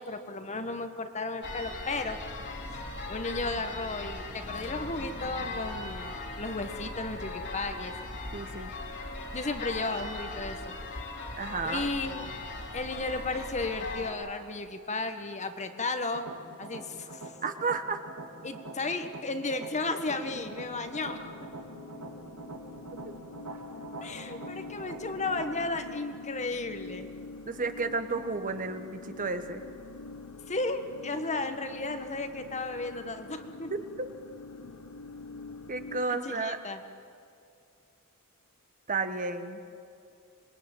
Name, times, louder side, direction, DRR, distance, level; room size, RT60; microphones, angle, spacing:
voice 1, 0.0-2.2 3.1-7.9 9.3-10.8 11.6-12.3 12.7-16.3 16.6-17.3 18.4-21.5 24.0-27.1 30.5-33.7 36.1-36.8, left 3 dB, 30° left, 8 dB, 1.5 m, -34 dB
sound 1, 1.4-14.1, left 2 dB, 55° left, 3.2 m, -38 dB
voice 2, 8.3-8.7 11.4-11.9 17.4-18.0 27.4-29.6 33.7-33.8 35.7-36.6 38.9-39.6, right 4 dB, 40° right, 8 dB, 1.4 m, -32 dB
sound 2, 16.1-25.8, right 2 dB, 85° right, 3.4 m, -45 dB
sound 3, 20.0-36.1, left 3 dB, 90° left, 1.1 m, -45 dB
26.5 x 21.5 x 9.1 m, 2.5 s
head